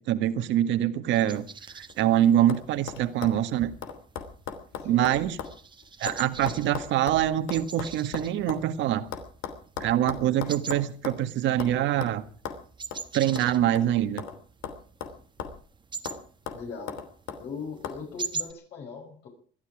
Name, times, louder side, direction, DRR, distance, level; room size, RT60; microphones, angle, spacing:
voice 1, 0.0-1.5 1.7-3.7 4.8-5.4 6.0-9.1 9.8-12.2 13.1-14.2, right 12 dB, 70° right, 1.7 m, -24 dB
sound 1, 1.1-18.5, right 5 dB, 25° right, 1.2 m, -43 dB
sound 2, 1.7-2.1 2.5-2.6 2.9-5.6 5.8-8.6 9.1-11.2 11.6-11.7 12.0-12.1 12.4-12.6 12.9-13.0 13.3-14.4 14.6-15.7 16.0-16.2 16.5-17.4 17.8-18.0, left 7 dB, 75° left, 3.1 m, -37 dB
voice 2, 4.8-5.1 16.5-17.0 17.4-19.3, left 5 dB, 60° left, 6.0 m, -39 dB
20.0 x 13.5 x 5.0 m
cardioid pair, 105°, 20 cm